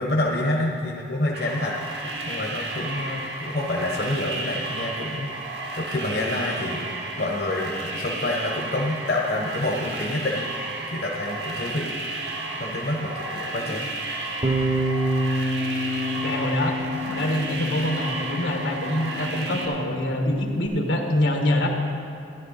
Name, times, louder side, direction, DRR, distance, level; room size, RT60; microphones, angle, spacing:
voice 1, 0.0-1.7 2.2-5.3 5.7-6.9 7.2-10.5 10.9-11.9 12.6-13.9, left 1 dB, 60° left, -2 dB, 1.1 m, -27 dB
sound 1, 1.3-19.7, right 2 dB, 65° right, 1.4 m, -33 dB
Bass guitar, 14.4-20.7, equal, 35° right, 0.9 m, -28 dB
voice 2, 16.1-21.7, left 1 dB, 80° left, 2 dB, 1.4 m, -25 dB
13.5 x 10.5 x 4.1 m, 2.7 s
head